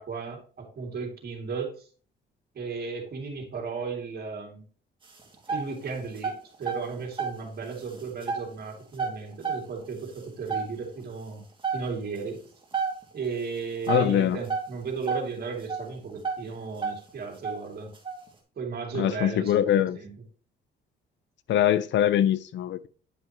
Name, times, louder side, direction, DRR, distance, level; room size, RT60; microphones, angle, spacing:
voice 1, 0.0-1.9 2.5-4.7 5.5-11.5 11.7-12.4 13.1-17.9 18.6-20.1, right 4 dB, 50° right, 1 dB, 2.7 m, -35 dB
sound 1, 5.0-5.8 6.1-7.4 7.8-8.4 8.9-9.8 10.2-10.3 10.5-10.8 11.3-11.4 11.6-11.9 12.2-12.3 12.7-13.0 13.8-14.8 15.0-16.5 16.7-17.1 17.4-18.3, right 5 dB, 25° right, 2.3 m, -30 dB
voice 2, 13.9-14.4 18.9-20.0 21.5-22.9, left 10 dB, 65° left, 16 dB, 0.6 m, -23 dB
10.0 x 5.5 x 3.0 m, 0.40 s
cardioid pair, 90°, 20 cm